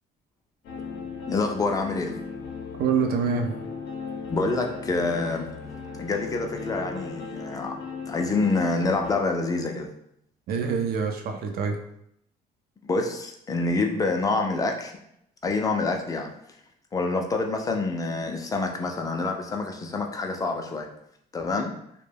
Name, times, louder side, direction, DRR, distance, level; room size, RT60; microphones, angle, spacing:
sound 1, 0.6-9.2, left 5 dB, 80° left, 0.5 m, -37 dB
voice 1, 1.3-2.2 4.3-5.5 6.0-7.8 8.1-9.9 12.8-14.9 15.4-16.3 16.9-20.9 21.3-21.7, left 3 dB, 20° left, 3 dB, 0.4 m, -27 dB
voice 2, 2.8-3.5 10.5-11.8, right 5 dB, 65° right, 4 dB, 0.5 m, -25 dB
2.2 x 2.1 x 3.3 m, 0.74 s
cardioid pair, 110°, 17 cm